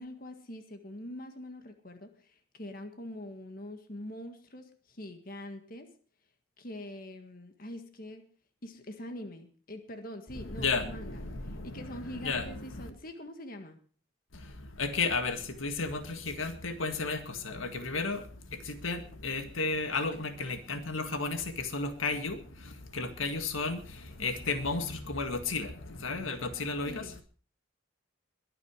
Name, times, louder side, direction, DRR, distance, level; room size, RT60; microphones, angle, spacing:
voice 1, 0.0-5.9 6.6-8.3 8.6-13.8 26.9-27.2, left 1 dB, 45° left, 1.8 m, -44 dB
voice 2, 10.3-12.9 14.3-27.1, left 3 dB, 85° left, 1.9 m, -34 dB
22.0 x 9.0 x 4.9 m
head